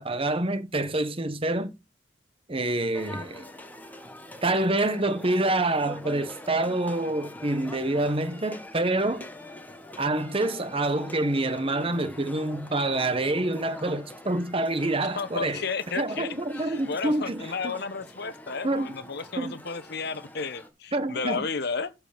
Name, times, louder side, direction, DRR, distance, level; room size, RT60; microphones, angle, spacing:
voice 1, 0.0-1.7 2.5-3.4 4.4-9.3 10.0-15.6 15.9-17.7 18.6-18.9 19.4-19.5 20.9-21.4, right 2 dB, 30° right, 1.1 m, -27 dB
sound 1, 2.9-20.7, left 1 dB, 10° left, 1.5 m, -44 dB
voice 2, 15.2-21.9, left 4 dB, 60° left, 1.0 m, -33 dB
13.0 x 4.9 x 5.0 m
head